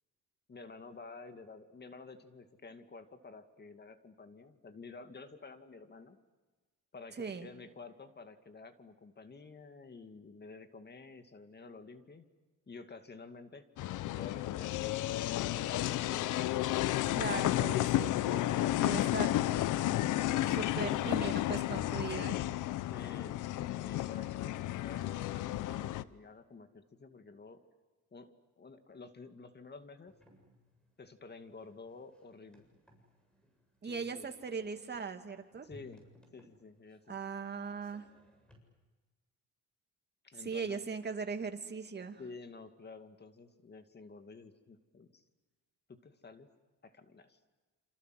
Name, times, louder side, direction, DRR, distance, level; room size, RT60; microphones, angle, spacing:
voice 1, 0.5-6.2 6.9-12.3 12.7-14.8 15.5-15.9 18.5-19.3 22.9-23.4 23.8-27.6 28.1-30.2 31.0-32.6 33.8-34.3 35.6-36.1 36.3-37.2 40.2-40.8 42.2-45.2 45.9-46.5 46.8-47.4, left 4 dB, 35° left, 8 dB, 2.3 m, -51 dB
sound 1, 13.8-26.0, left 14 dB, 85° left, 0.8 m, -32 dB
voice 2, 17.2-18.5 18.8-19.4 20.5-22.4 33.8-35.7 37.1-38.1 40.4-42.2, right 5 dB, 35° right, 6 dB, 2.6 m, -39 dB
sound 2, 19.0-24.6, right 7 dB, 75° right, 4.2 m, -57 dB
sound 3, 30.1-38.6, left 1 dB, 5° left, 7.5 m, -63 dB
28.0 x 27.0 x 7.9 m, 1.3 s
cardioid pair, 90°, 30 cm